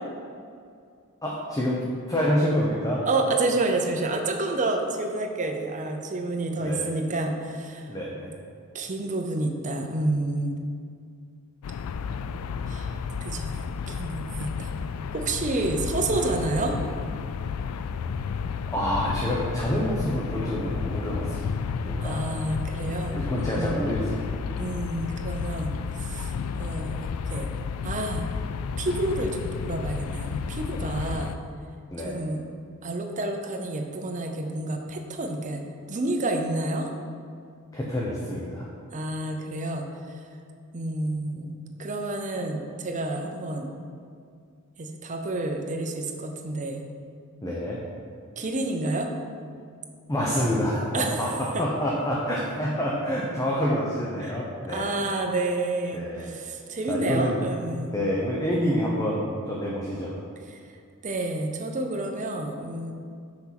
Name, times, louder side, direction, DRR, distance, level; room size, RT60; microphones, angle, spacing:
voice 1, 1.2-1.8 2.1-3.0 6.6-6.9 7.9-8.3 18.7-21.4 21.8-22.3 23.1-24.4 31.9-32.2 37.7-38.7 47.4-47.8 50.1-54.9 55.9-56.3 56.9-57.4 57.9-60.2, equal, 15° left, -4 dB, 0.7 m, -27 dB
voice 2, 3.1-7.9 8.7-10.6 12.7-13.6 13.9-14.7 15.1-16.8 22.0-23.8 24.6-27.5 27.8-28.3 28.8-31.4 32.0-32.4 32.8-36.9 38.9-40.2 40.7-41.5 41.8-43.7 44.8-46.8 48.4-49.1 50.9-51.2 51.5-51.7 54.2-54.4 54.7-57.9 60.5-60.6 61.0-62.9, right 2 dB, 35° right, 3 dB, 0.7 m, -29 dB
sound 1, 11.6-31.4, left 6 dB, 90° left, 0.3 m, -32 dB
6.0 x 4.4 x 5.8 m, 2.3 s
head